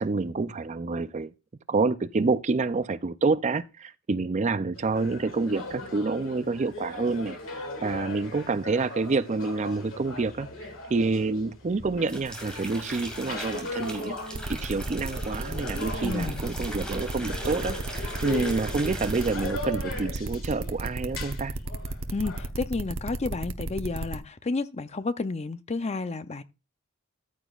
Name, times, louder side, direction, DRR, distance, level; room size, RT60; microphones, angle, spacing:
voice 1, 0.0-1.3 1.7-10.5 10.9-21.5, right 3 dB, 35° right, 0.4 m, -28 dB
sound 1, 4.7-22.5, left 2 dB, 70° left, 2.1 m, -39 dB
sound 2, 11.8-19.8 20.1-20.5, right 1 dB, 5° left, 2.4 m, -39 dB
sound 3, 14.3-24.2, right 2 dB, 75° right, 1.0 m, -33 dB
voice 2, 16.0-16.4 22.1-26.4, left 3 dB, 30° left, 0.6 m, -31 dB
14.0 x 8.2 x 2.4 m
head